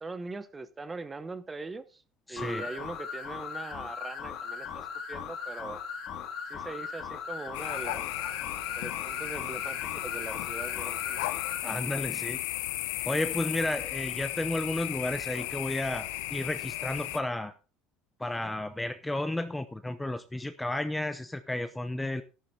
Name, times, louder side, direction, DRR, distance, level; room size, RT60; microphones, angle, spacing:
voice 1, 0.0-2.0 2.3-5.8 6.5-8.1 8.7-11.2, right 3 dB, 15° right, 0.9 m, -41 dB
voice 2, 2.3-2.7 11.6-12.4 13.1-17.5 18.2-22.2, left 1 dB, 5° left, 0.6 m, -32 dB
sound 1, 2.4-11.6, left 6 dB, 45° left, 2.5 m, -39 dB
sound 2, 7.5-17.2, left 18 dB, 90° left, 0.9 m, -35 dB
14.0 x 11.5 x 2.7 m
cardioid pair, 155°, 0 cm